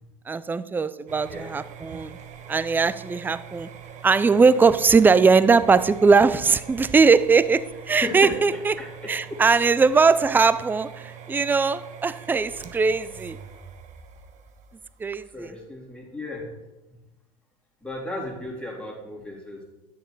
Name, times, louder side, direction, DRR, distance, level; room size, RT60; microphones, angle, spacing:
voice 1, 0.3-2.2 2.5-3.7 4.0-8.7 9.1-13.4 15.0-15.5, right 4 dB, 10° right, 15 dB, 0.4 m, -20 dB
sound 1, 1.1-15.6, right 7 dB, 40° right, 1.2 m, -43 dB
voice 2, 7.9-8.3 8.8-8.9 15.3-16.5 17.8-19.6, left 2 dB, 5° left, -3 dB, 3.5 m, -34 dB
11.0 x 6.5 x 4.7 m, 1.0 s
hypercardioid pair, 90°, 19 cm